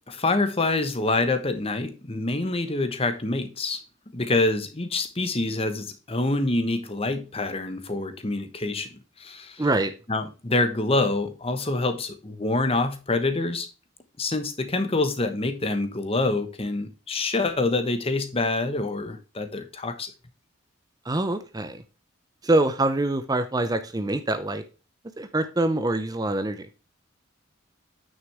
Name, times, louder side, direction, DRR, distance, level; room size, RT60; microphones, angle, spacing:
voice 1, 0.1-3.8 4.1-8.9 9.2-9.7 10.1-13.7 14.2-20.1, left 2 dB, 30° left, 1.2 m, -26 dB
voice 2, 9.6-9.9 21.1-21.8 22.4-24.6 25.2-26.7, right 2 dB, 20° right, 0.6 m, -25 dB
9.3 x 6.4 x 3.4 m
head